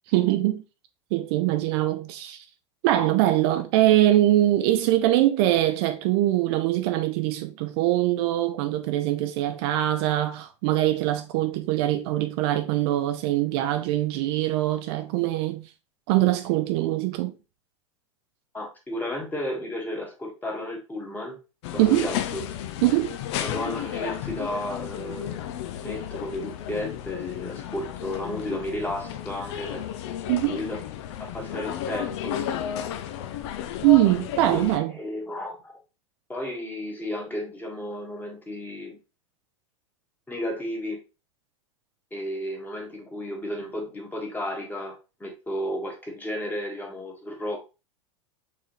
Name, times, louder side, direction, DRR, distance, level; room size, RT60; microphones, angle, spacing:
voice 1, 0.1-0.6 1.1-2.4 2.8-15.7 16.1-17.3 21.8-22.1 22.8-23.1 30.3-30.6 33.8-34.9, right 14 dB, 50° right, 0.5 m, -23 dB
voice 2, 18.5-21.4 21.7-22.4 23.4-25.5 25.8-29.8 30.5-30.8 31.2-32.4 34.5-35.8 36.3-39.0 40.3-41.0 42.1-47.6, left 1 dB, 10° left, 1.6 m, -33 dB
sound 1, 21.6-34.8, left 10 dB, 55° left, 0.6 m, -33 dB
4.8 x 3.6 x 3.1 m
hypercardioid pair, 100°, 17 cm